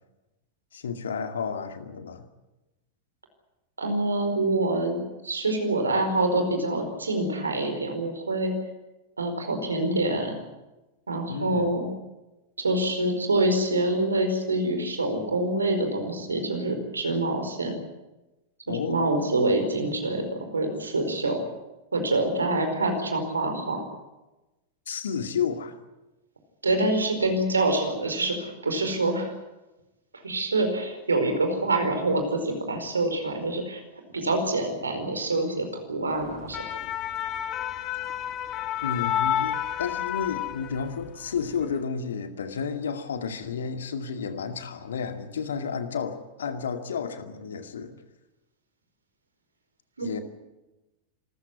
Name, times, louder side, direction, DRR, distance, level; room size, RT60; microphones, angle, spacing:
voice 1, 0.7-2.3 11.3-11.7 18.7-19.0 24.9-25.8 38.8-47.9 50.0-50.2, left 6 dB, 65° left, 8 dB, 2.1 m, -31 dB
voice 2, 3.8-8.5 9.2-10.3 11.1-11.9 12.6-17.7 18.7-21.4 21.9-23.8 26.6-29.3 30.2-33.8 34.1-36.6 50.0-50.2, right 2 dB, 75° right, 6 dB, 4.8 m, -26 dB
sound 1, 36.3-41.1 41.4-41.6, left 11 dB, 35° left, 1.6 m, -30 dB
26.5 x 14.5 x 9.9 m, 1.0 s
figure-of-eight pair, 90°, 0 cm